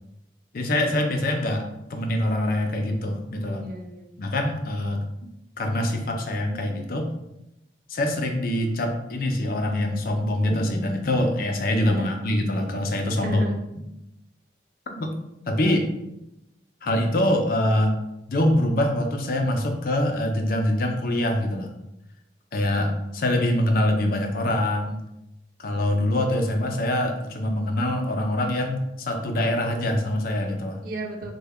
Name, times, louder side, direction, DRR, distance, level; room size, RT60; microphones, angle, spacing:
voice 1, 0.5-3.7 4.2-5.0 5.6-7.1 7.9-13.4 13.8-13.9 15.0-15.1 15.5-15.9 16.8-18.0 18.3-21.7 22.5-25.0 25.6-30.8, left 1 dB, 50° left, 4 dB, 0.4 m, -24 dB
voice 2, 3.4-4.1 11.8-12.1 13.1-13.5 22.7-22.9 30.8-31.3, right 2 dB, 50° right, 2 dB, 0.4 m, -35 dB
3.3 x 2.2 x 3.4 m, 0.87 s
head